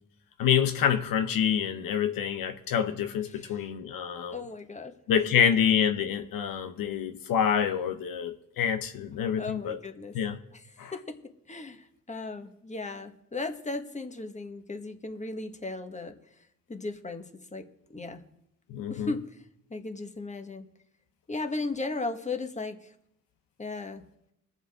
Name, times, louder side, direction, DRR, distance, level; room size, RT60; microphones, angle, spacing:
voice 1, 0.4-4.4 5.1-9.8 10.1-10.4 10.8-10.9 18.7-19.1, left 8 dB, 75° left, 0.9 m, -27 dB
voice 2, 3.3-3.6 4.3-4.9 9.4-10.2 10.5-11.2 11.5-16.2 16.7-18.2 18.9-19.4 19.7-20.7 21.3-22.9 23.6-24.0, left 3 dB, 20° left, 1.5 m, -36 dB
21.5 x 7.3 x 3.6 m
supercardioid pair, 60°, 35 cm